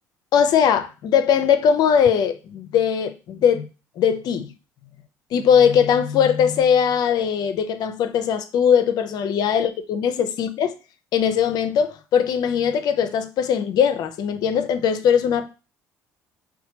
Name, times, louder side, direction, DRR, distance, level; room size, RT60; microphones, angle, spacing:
voice 1, 0.3-3.7 4.0-4.5 5.3-10.7 11.1-15.5, left 8 dB, 55° left, 0.5 m, -20 dB
4.2 x 2.2 x 2.8 m
hypercardioid pair, 55°, 8 cm